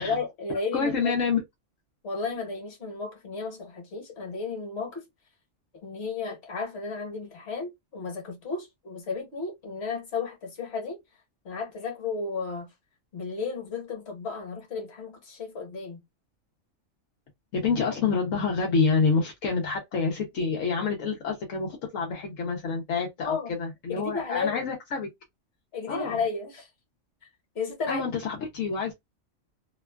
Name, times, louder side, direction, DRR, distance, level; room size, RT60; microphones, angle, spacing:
voice 1, 0.0-1.1 2.0-5.0 5.8-11.0 11.4-12.7 13.1-16.0 23.2-23.5 23.9-24.6 25.7-26.7 27.2-27.3 27.5-28.1, left 4 dB, 55° left, 1.4 m, -33 dB
voice 2, 0.7-1.4 17.5-25.1 25.9-26.2 27.9-28.9, left 5 dB, 80° left, 1.1 m, -27 dB
2.9 x 2.3 x 2.3 m
omnidirectional pair, 1.3 m